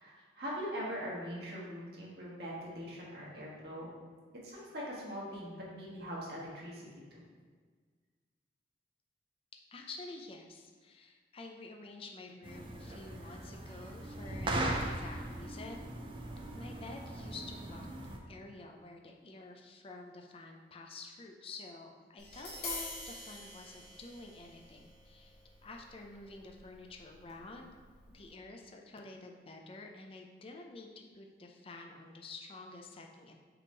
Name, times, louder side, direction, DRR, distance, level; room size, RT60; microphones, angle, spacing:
voice 1, 0.0-3.9 4.4-6.9 7.1-7.2, equal, 60° right, -5 dB, 1.5 m, -42 dB
voice 2, 9.7-15.8 16.6-17.9 18.3-25.4 25.6-27.7 28.1-33.3, left 3 dB, 30° left, 2 dB, 0.5 m, -49 dB
sound 1, 12.4-18.2, right 1 dB, 30° right, 0.5 m, -39 dB
Tap, 22.2-28.3, left 2 dB, 60° left, 1.7 m, -47 dB
6.0 x 3.5 x 4.4 m, 1.5 s
head